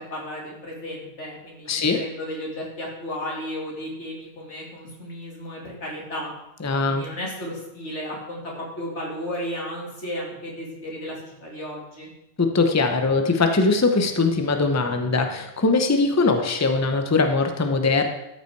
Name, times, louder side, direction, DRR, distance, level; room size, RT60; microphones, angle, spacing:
voice 1, 0.0-6.3 6.9-12.1, equal, 85° left, -2 dB, 2.8 m, -34 dB
voice 2, 1.7-2.0 6.6-7.1 12.4-18.1, left 3 dB, 15° left, 5 dB, 0.7 m, -21 dB
13.0 x 5.8 x 4.6 m, 0.89 s
omnidirectional pair, 1.2 m